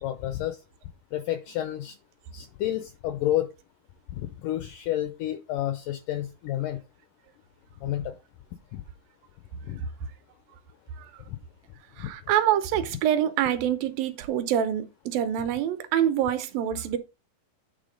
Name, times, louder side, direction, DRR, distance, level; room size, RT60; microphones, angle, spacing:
voice 1, 0.0-0.6 1.1-1.9 2.3-3.5 4.1-6.8 7.8-8.1 8.7-8.8 9.7-9.8, left 13 dB, 85° left, 1.8 m, -30 dB
voice 2, 12.0-17.0, right 10 dB, 75° right, 2.4 m, -26 dB
9.2 x 3.6 x 5.1 m
omnidirectional pair, 4.5 m